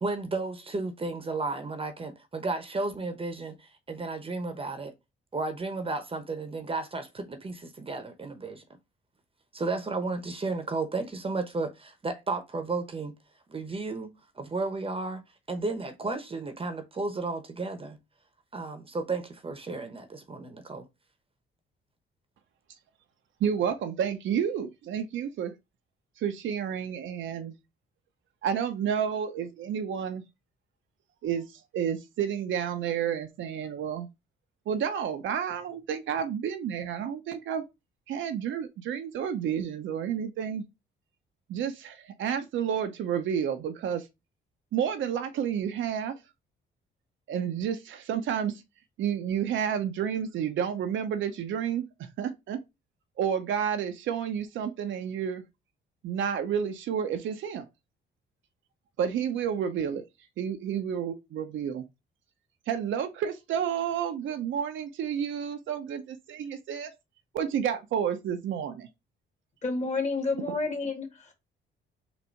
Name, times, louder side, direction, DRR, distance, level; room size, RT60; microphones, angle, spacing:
voice 1, 0.0-4.9 5.3-8.6 9.5-13.1 13.5-15.2 15.5-18.0 18.5-20.9, right 3 dB, 30° right, 0.9 m, -33 dB
voice 2, 23.4-25.5 26.2-27.5 28.4-30.2 31.2-34.1 34.7-37.6 38.1-40.6 41.5-44.1 44.7-46.2 47.3-48.6 49.0-52.6 53.2-55.4 56.0-57.7 59.0-60.0 60.4-61.8 62.7-66.9 67.3-68.9, right 8 dB, 75° right, 0.8 m, -30 dB
voice 3, 69.6-71.3, left 3 dB, 35° left, 1.8 m, -30 dB
4.0 x 2.6 x 4.5 m
cardioid pair, 90°, 20 cm